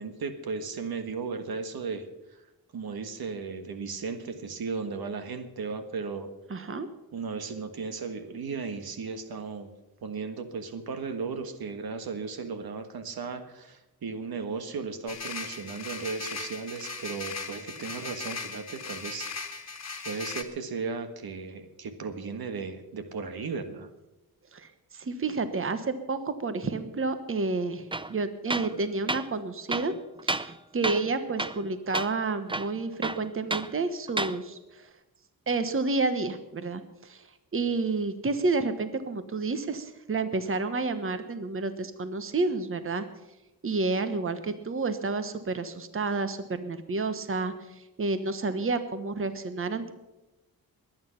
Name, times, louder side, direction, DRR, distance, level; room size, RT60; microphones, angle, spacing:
voice 1, 0.0-2.0 2.7-6.3 7.1-9.7 10.0-19.7 20.0-23.9, right 4 dB, 80° right, 9 dB, 1.6 m, -36 dB
voice 2, 6.5-6.9 24.5-29.9 30.2-34.9 35.5-43.1 43.6-49.9, right 3 dB, 35° right, 11 dB, 1.2 m, -30 dB
sound 1, 15.1-20.4, left 4 dB, 45° left, 1.5 m, -38 dB
Tools, 27.9-28.1 28.5-28.8 29.1-29.3 29.7-30.6 30.8-31.1 31.4-31.7 31.9-32.1 32.5-33.7 34.1-34.4, right 2 dB, 15° right, 0.5 m, -31 dB
22.0 x 9.1 x 5.8 m, 1.0 s
wide cardioid pair, 100°, 36 cm